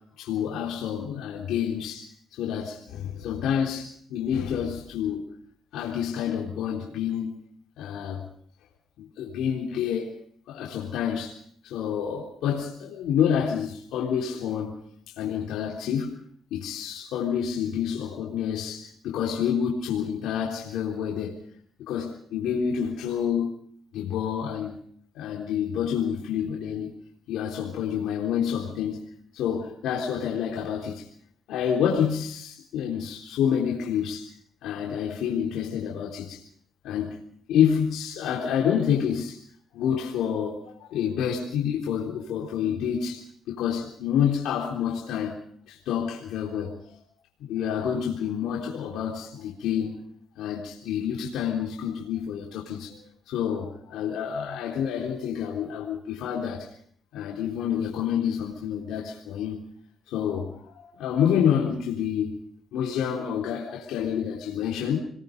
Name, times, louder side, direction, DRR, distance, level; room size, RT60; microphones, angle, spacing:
voice 1, 0.2-5.3 5.7-7.5 7.8-8.2 9.0-10.1 10.5-14.8 15.1-16.2 16.5-21.4 21.9-23.6 23.9-24.8 25.1-26.9 27.3-29.1 29.3-31.1 31.5-34.4 34.6-36.4 36.8-37.2 37.5-39.4 39.7-47.0 47.5-50.1 50.4-53.0 53.3-56.7 57.1-59.6 60.1-62.4 62.7-65.0, left 8 dB, 85° left, 3.7 m, -28 dB
27.5 x 21.5 x 5.3 m
cardioid pair, 90°, 0 cm